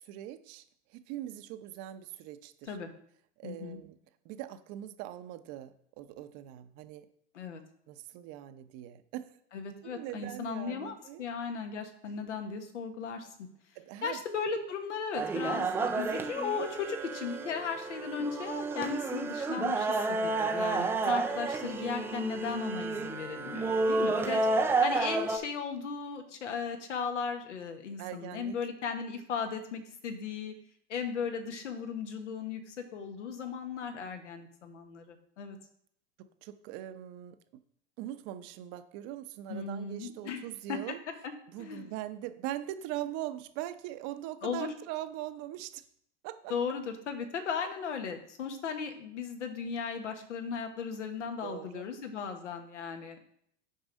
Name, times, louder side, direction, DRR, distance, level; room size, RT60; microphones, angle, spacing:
voice 1, 0.0-0.6 0.9-2.8 3.4-4.0 4.2-7.1 7.9-9.3 9.8-11.2 13.8-14.2 20.1-20.8 24.5-24.6 28.0-28.6 36.4-37.4 38.0-41.0 41.5-45.8 46.2-46.5 51.4-51.9, right 13 dB, 45° right, 10 dB, 0.7 m, -41 dB
voice 2, 3.4-3.8 7.3-7.6 9.5-13.5 14.0-24.4 24.8-30.5 30.9-35.6 39.5-40.4 40.7-40.8 41.6-41.9 44.4-44.7 46.5-53.3, left 6 dB, 85° left, 6 dB, 1.3 m, -36 dB
sound 1, 15.1-25.4, right 3 dB, 5° right, 0.3 m, -31 dB
6.4 x 4.7 x 5.3 m, 0.66 s
hypercardioid pair, 110°, 35 cm